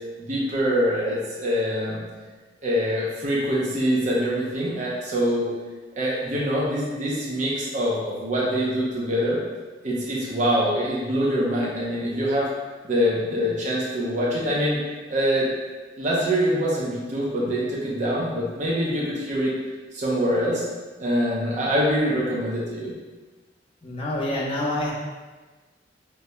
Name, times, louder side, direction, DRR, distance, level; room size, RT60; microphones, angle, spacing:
voice 1, 0.2-2.1 2.6-5.5 6.0-9.4 9.8-12.5 12.8-14.8 15.1-15.5 16.0-19.5 19.9-20.6 21.0-22.9, equal, 45° right, -6 dB, 0.7 m, -24 dB
voice 2, 23.8-24.9, left 1 dB, 30° left, -5 dB, 0.9 m, -27 dB
6.5 x 2.7 x 2.2 m, 1.3 s
head